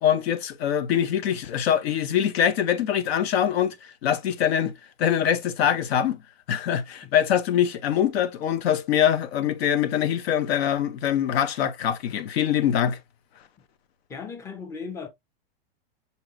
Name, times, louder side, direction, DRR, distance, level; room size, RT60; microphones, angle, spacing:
voice 1, 0.0-3.8 4.0-4.7 5.0-6.2 6.5-13.0, left 9 dB, 75° left, 0.8 m, -23 dB
voice 2, 14.1-15.1, left 5 dB, 10° left, 0.5 m, -36 dB
5.4 x 2.9 x 2.2 m
supercardioid pair, 150°, 31 cm